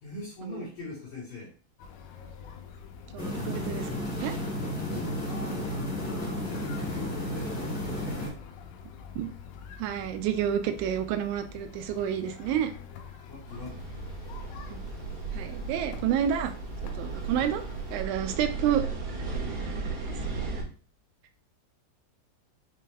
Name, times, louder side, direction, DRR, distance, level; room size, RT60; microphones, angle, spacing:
voice 1, 0.0-1.5 4.9-8.4 13.3-13.9 17.3-17.5 18.5-18.8, left 2 dB, 65° left, -5 dB, 2.2 m, -42 dB
sound 1, 1.8-18.1, left 6 dB, 90° left, 2.4 m, -46 dB
voice 2, 3.1-4.4 9.2-9.3 9.8-12.7 14.7-14.9 15.4-16.5 17.0-17.6 17.9-18.8, right 9 dB, 85° right, 8 dB, 2.9 m, -29 dB
sound 2, 3.2-8.3, left 1 dB, 30° left, 1.3 m, -33 dB
sound 3, 13.5-20.6, right 4 dB, 65° right, 1.6 m, -35 dB
6.7 x 2.3 x 3.2 m, 0.38 s
omnidirectional pair, 5.3 m